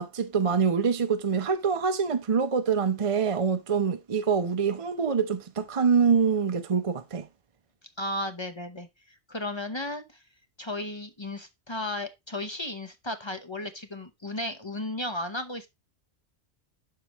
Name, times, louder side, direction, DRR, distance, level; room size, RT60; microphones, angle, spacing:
voice 1, 0.0-7.3, right 6 dB, 35° right, 0.6 m, -25 dB
voice 2, 8.0-10.2 10.6-15.7, left 1 dB, 30° left, 0.8 m, -34 dB
11.5 x 4.8 x 3.0 m
omnidirectional pair, 1.1 m